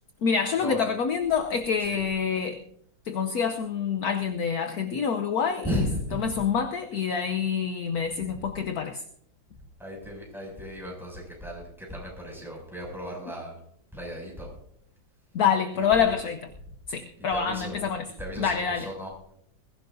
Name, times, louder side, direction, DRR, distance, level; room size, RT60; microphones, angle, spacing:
voice 1, 0.2-2.6 3.1-5.9 6.1-9.0 15.3-16.4 16.9-18.1 18.4-18.9, left 6 dB, 65° left, 1.2 m, -26 dB
voice 2, 5.6-6.2 7.1-7.2 8.3-8.5 9.8-13.6 13.9-14.5 15.7-16.2 17.3-17.8 18.2-19.1, equal, ahead, 6.6 m, -35 dB
21.5 x 16.0 x 2.7 m
omnidirectional pair, 2.0 m